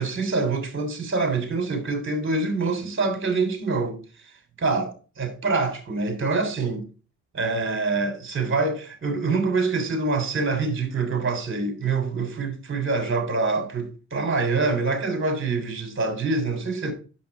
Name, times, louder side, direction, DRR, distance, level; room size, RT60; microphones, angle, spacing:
voice 1, 0.0-4.0 4.6-6.8 7.3-16.9, right 3 dB, 40° right, 3.4 m, -25 dB
8.4 x 7.2 x 3.5 m
cardioid pair, 90°, 30 cm